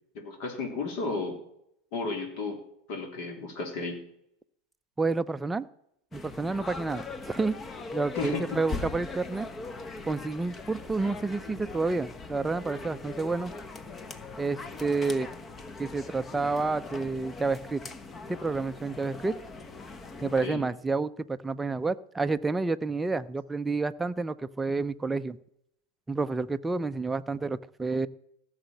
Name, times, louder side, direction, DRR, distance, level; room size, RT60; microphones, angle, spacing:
voice 1, 0.1-1.4 1.9-2.6 2.9-4.0 8.1-8.6 20.4-20.6, left 3 dB, 55° left, 4 dB, 3.4 m, -33 dB
voice 2, 5.0-5.7 6.1-7.5 7.9-9.5 10.0-13.5 14.4-15.3 15.8-17.8 18.4-19.4 20.2-25.4 26.1-28.1, right 3 dB, 10° right, 11 dB, 0.6 m, -29 dB
sound 1, 6.1-20.5, left 3 dB, 25° left, 1.1 m, -41 dB
15.5 x 6.5 x 7.9 m, 0.76 s
figure-of-eight pair, 85°, 0 cm